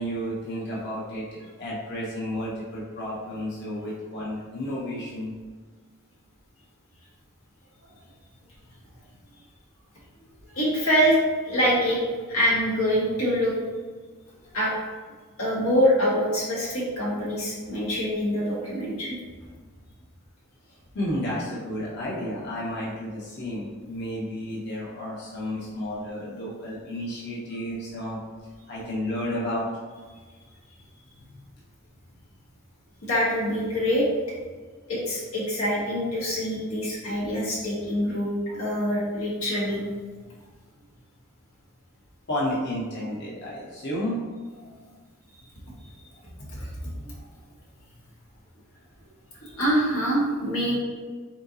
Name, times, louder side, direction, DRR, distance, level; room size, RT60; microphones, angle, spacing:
voice 1, 0.0-5.3 20.7-28.2 28.7-29.6 42.3-44.2, equal, 50° left, -7 dB, 1.2 m, -32 dB
voice 2, 10.5-11.2 11.4-12.0 12.3-13.5 14.5-14.7 15.4-19.2 33.0-34.1 34.9-39.8 46.5-46.7 47.0-47.1 49.4-50.8, equal, 80° left, -5 dB, 1.3 m, -25 dB
4.4 x 4.0 x 2.7 m, 1.5 s
head